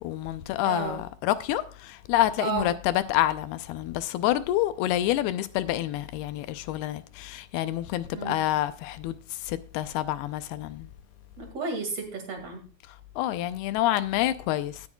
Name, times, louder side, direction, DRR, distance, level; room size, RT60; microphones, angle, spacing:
voice 1, 0.0-10.9 13.2-14.9, left 13 dB, 80° left, 2.6 m, -28 dB
voice 2, 0.6-1.0 2.4-2.7 8.1-8.3 11.4-12.6, right 5 dB, 45° right, 2.9 m, -32 dB
17.5 x 8.0 x 2.3 m
omnidirectional pair, 4.6 m